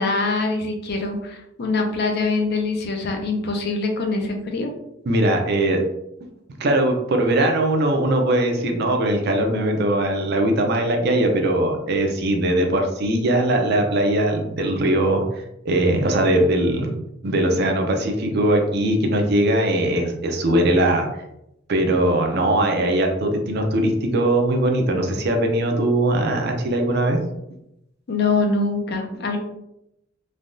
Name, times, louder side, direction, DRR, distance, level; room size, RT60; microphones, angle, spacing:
voice 1, 0.0-4.7 28.1-29.4, left 3 dB, 55° left, 3 dB, 0.5 m, -24 dB
voice 2, 5.1-5.8 6.6-15.2 15.6-16.9 17.2-21.1 21.7-27.2, right 1 dB, 55° right, 3 dB, 0.5 m, -20 dB
3.3 x 2.3 x 2.5 m, 0.84 s
head